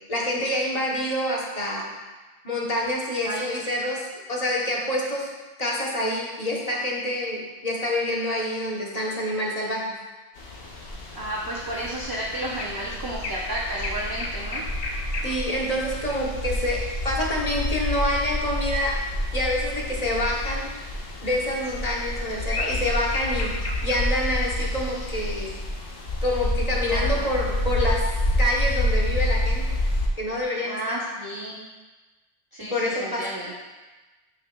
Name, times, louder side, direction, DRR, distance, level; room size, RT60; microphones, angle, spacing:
voice 1, 0.1-1.9 2.4-4.0 4.3-5.3 5.6-9.8 15.2-18.9 19.3-20.7 21.2-23.6 23.8-25.5 26.2-28.0 28.4-29.8 30.2-31.0 32.6-33.3, left 1 dB, 40° left, -2 dB, 1.0 m, -27 dB
sound 1, 10.4-30.1, left 1 dB, 65° left, 1.1 m, -28 dB
voice 2, 11.1-14.6 26.9-27.2 30.6-31.6 32.5-33.5, right 1 dB, 25° right, -4 dB, 0.6 m, -32 dB
8.8 x 5.7 x 2.2 m, 1.2 s
omnidirectional pair, 1.1 m